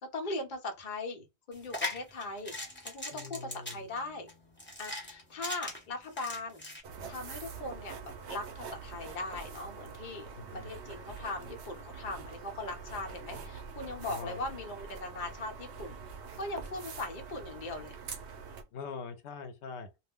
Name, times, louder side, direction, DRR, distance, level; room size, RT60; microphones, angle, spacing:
voice 1, 0.0-2.5 2.8-4.3 4.8-6.6 7.1-16.0 16.4-18.0, left 2 dB, 50° left, 0.9 m, -40 dB
sound 1, 1.5-6.8, left 2 dB, 10° left, 0.9 m, -40 dB
voice 2, 3.1-3.8 10.4-10.7 14.0-14.4 18.7-19.9, left 5 dB, 80° left, 0.9 m, -43 dB
sound 2, 6.8-18.6, right 5 dB, 80° right, 0.9 m, -45 dB
2.3 x 2.1 x 3.5 m
omnidirectional pair, 1.1 m